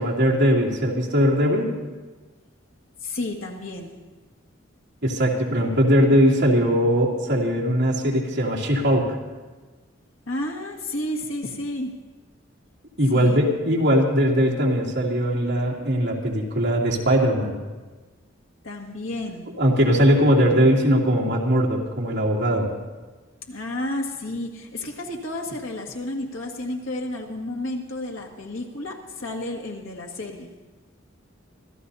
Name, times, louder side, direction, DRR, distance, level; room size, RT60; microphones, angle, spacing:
voice 1, 0.0-1.7 5.0-9.0 13.0-17.6 19.6-22.7, equal, 60° right, -3 dB, 2.8 m, -20 dB
voice 2, 3.0-4.0 10.3-11.9 13.1-13.4 18.6-19.5 23.5-30.5, left 1 dB, 85° left, 2 dB, 1.9 m, -31 dB
26.0 x 14.5 x 2.8 m, 1.3 s
head